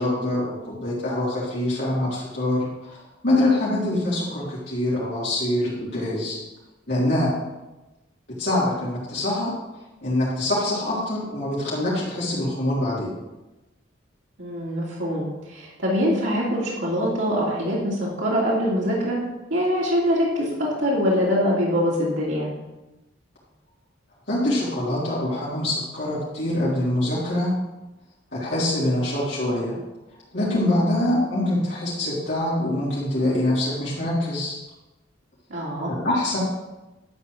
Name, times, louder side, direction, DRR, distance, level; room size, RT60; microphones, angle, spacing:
voice 1, 0.0-6.4 6.9-7.3 8.3-9.6 10.0-13.1 24.3-27.5 28.3-29.8 30.3-34.6 35.5-36.4, left 1 dB, 60° left, -9 dB, 3.7 m, -24 dB
voice 2, 14.4-19.2 19.5-22.5 35.5-35.9, equal, 75° right, -6 dB, 3.1 m, -23 dB
12.0 x 4.3 x 8.0 m, 1.0 s
head